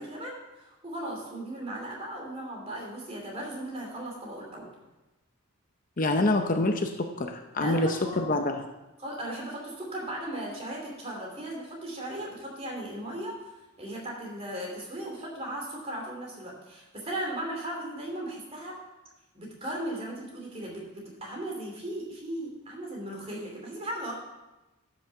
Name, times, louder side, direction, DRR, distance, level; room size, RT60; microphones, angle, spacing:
voice 1, 0.0-4.7 7.5-8.4 9.0-13.3 13.8-18.8 19.3-24.1, right 1 dB, 30° right, -1 dB, 2.8 m, -37 dB
voice 2, 6.0-8.6, left 2 dB, 40° left, 5 dB, 0.6 m, -26 dB
12.0 x 6.2 x 5.7 m, 1.0 s
head